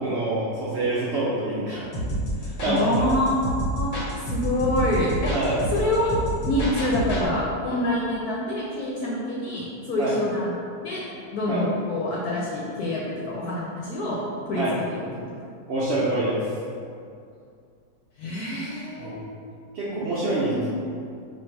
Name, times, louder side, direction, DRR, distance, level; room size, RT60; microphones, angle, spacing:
voice 1, 0.0-1.8 2.3-2.9 5.3-5.6 10.0-10.1 11.5-11.6 14.6-14.7 15.7-16.5 19.0-19.2 19.7-20.6, right 2 dB, 75° right, -8 dB, 0.6 m, -26 dB
sound 1, 1.9-7.3, right 1 dB, 45° left, 0.8 m, -28 dB
voice 2, 2.7-6.1 6.5-10.6 10.8-11.0 11.3-14.2 14.5-14.6 14.9-15.4 18.2-19.2 20.5-20.6, left 1 dB, 70° left, -5 dB, 1.0 m, -26 dB
3.2 x 2.4 x 4.4 m, 2.3 s
omnidirectional pair, 1.8 m